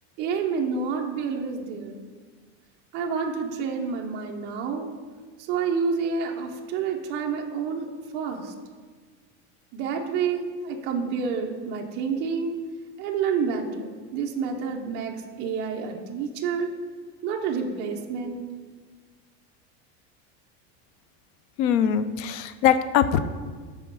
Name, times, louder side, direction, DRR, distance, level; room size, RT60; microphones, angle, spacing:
voice 1, 0.2-2.1 2.9-4.9 5.5-7.9 8.1-8.5 9.7-12.5 13.0-16.7 17.2-18.4, right 5 dB, 30° right, 1 dB, 0.6 m, -29 dB
voice 2, 21.6-23.2, left 9 dB, 50° left, 12 dB, 0.4 m, -22 dB
6.2 x 4.4 x 6.1 m, 1.5 s
cardioid pair, 180°, 35 cm